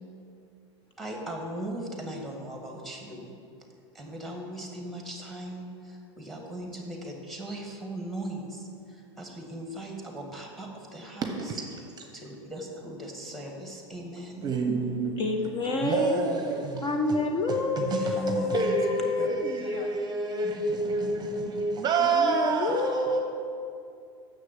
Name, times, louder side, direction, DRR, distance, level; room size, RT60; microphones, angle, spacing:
voice 1, 1.0-3.3 3.9-11.3 12.1-14.5 17.9-18.7 19.2-19.3 20.4-20.8, right 1 dB, ahead, 1 dB, 1.8 m, -38 dB
voice 2, 11.2-12.0 14.4-15.3 15.7-17.2 17.5-23.2, right 3 dB, 25° right, 4 dB, 0.9 m, -29 dB
voice 3, 15.2-16.2 16.8-19.9 22.0-23.2, left 2 dB, 35° left, 3 dB, 0.9 m, -28 dB
6.8 x 6.2 x 7.6 m, 2.5 s
hypercardioid pair, 105°, 15 cm